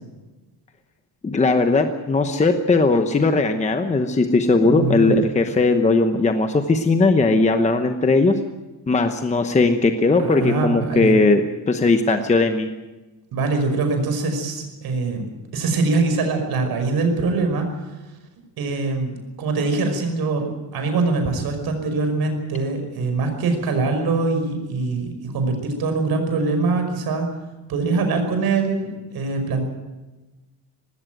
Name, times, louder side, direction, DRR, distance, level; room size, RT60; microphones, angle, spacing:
voice 1, 1.2-8.3 8.9-11.4 11.7-12.7, left 3 dB, 15° left, 6 dB, 1.0 m, -18 dB
voice 2, 4.4-5.2 10.2-11.2 13.3-15.2 15.5-17.7 18.6-27.3 27.7-29.6, right 3 dB, 60° right, 5 dB, 5.4 m, -23 dB
19.5 x 17.0 x 9.2 m, 1.2 s
cardioid pair, 160°, 41 cm